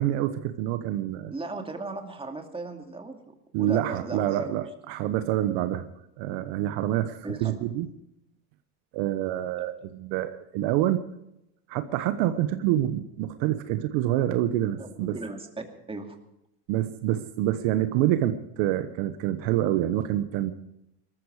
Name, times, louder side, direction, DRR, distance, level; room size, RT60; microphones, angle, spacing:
voice 1, 0.0-1.3 3.5-5.9 6.2-7.9 8.9-11.0 11.7-15.2 16.7-20.5, right 13 dB, 60° right, 10 dB, 1.2 m, -27 dB
voice 2, 1.3-4.7 7.2-7.5 9.6-9.7 14.8-16.2, right 3 dB, 10° right, 3 dB, 2.5 m, -37 dB
19.5 x 14.0 x 4.9 m, 0.80 s
supercardioid pair, 105°, 47 cm